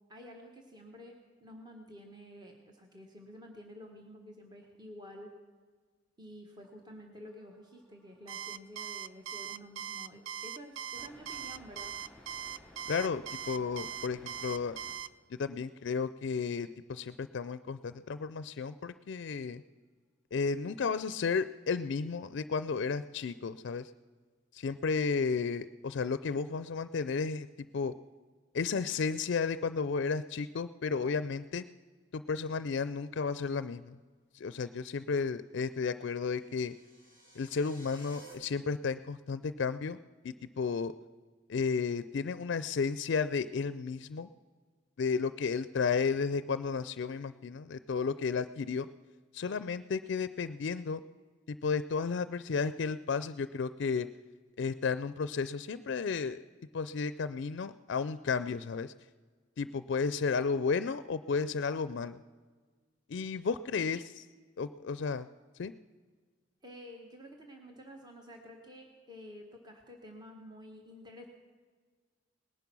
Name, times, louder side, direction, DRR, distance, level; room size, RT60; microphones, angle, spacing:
voice 1, 0.1-1.1 1.4-5.3 6.2-11.9 63.7-63.8 66.6-71.3, equal, 20° right, 2 dB, 1.4 m, -50 dB
sound 1, 7.2-14.9 18.0-18.1, left 1 dB, ahead, 4.2 m, -58 dB
Alarm, 8.3-15.1, right 9 dB, 90° right, 0.5 m, -40 dB
voice 2, 12.9-14.8 15.3-19.6 20.3-23.9 24.5-27.5 27.7-27.9 28.5-31.6 32.1-34.0 34.3-36.7 37.4-40.0 40.2-40.9 41.5-44.3 45.0-48.9 49.3-51.0 51.5-54.1 54.6-56.4 56.7-58.9 59.6-62.2 63.1-64.2 64.6-65.3 65.6-65.7, left 5 dB, 65° left, 14 dB, 0.4 m, -33 dB
sound 2, 35.8-38.3, right 2 dB, 50° right, 5.0 m, -56 dB
19.0 x 10.5 x 6.1 m, 1.5 s
head